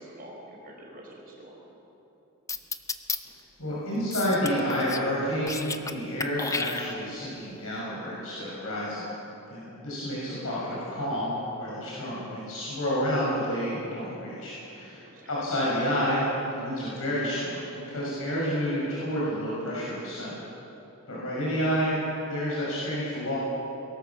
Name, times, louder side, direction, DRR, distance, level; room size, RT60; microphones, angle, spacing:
voice 1, 0.0-1.6 14.8-15.3, right 1 dB, 40° right, -1 dB, 4.7 m, -47 dB
sound 1, 2.5-3.2 4.1-5.1 5.4-5.9 6.2-7.2, left 4 dB, 15° left, 0.7 m, -32 dB
voice 2, 3.6-9.1 9.5-20.4 21.1-22.0 22.2-23.4, equal, 70° left, -7 dB, 6.2 m, -29 dB
22.5 x 18.0 x 7.3 m, 3.0 s
head